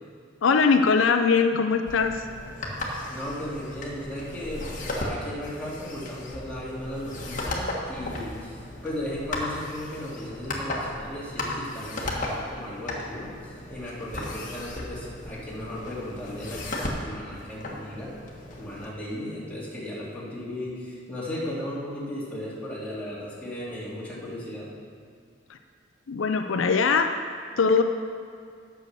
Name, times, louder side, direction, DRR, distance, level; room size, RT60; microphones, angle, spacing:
voice 1, 0.4-2.3 25.5-25.6 26.1-27.1 27.6-27.8, left 5 dB, 85° left, 7 dB, 0.5 m, -21 dB
sound 1, 1.9-18.8, left 1 dB, 40° left, 1.4 m, -35 dB
voice 2, 3.1-18.1 18.6-24.7, left 1 dB, 10° left, -8 dB, 2.3 m, -36 dB
9.1 x 6.4 x 6.5 m, 2.2 s
head